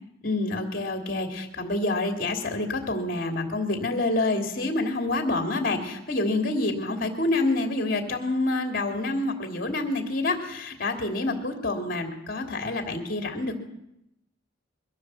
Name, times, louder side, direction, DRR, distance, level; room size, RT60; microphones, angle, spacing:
voice 1, 0.2-13.6, left 2 dB, 50° left, 5 dB, 2.9 m, -27 dB
22.5 x 16.0 x 7.7 m, 0.83 s
head